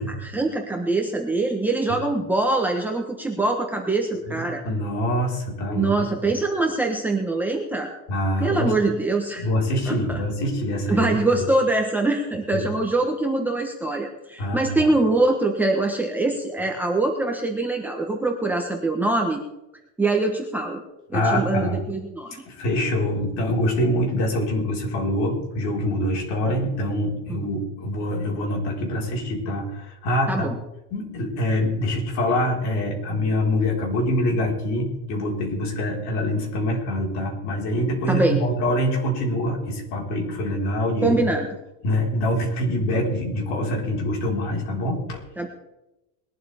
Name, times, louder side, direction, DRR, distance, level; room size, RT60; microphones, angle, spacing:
voice 1, 0.0-4.6 5.7-7.9 8.4-9.4 9.9-10.2 10.9-19.4 20.0-20.8 21.1-22.4 27.3-27.4 30.3-30.5 38.1-38.4 41.0-41.5 45.4-45.5, right 2 dB, 5° right, 1 dB, 1.1 m, -23 dB
voice 2, 4.3-6.3 8.1-8.7 9.4-11.4 12.5-12.7 14.4-14.9 21.1-21.9 22.4-30.4 30.9-41.1 41.8-45.2, left 1 dB, 50° left, -1 dB, 4.8 m, -25 dB
21.0 x 12.5 x 3.6 m, 0.94 s
cardioid pair, 175°, 34 cm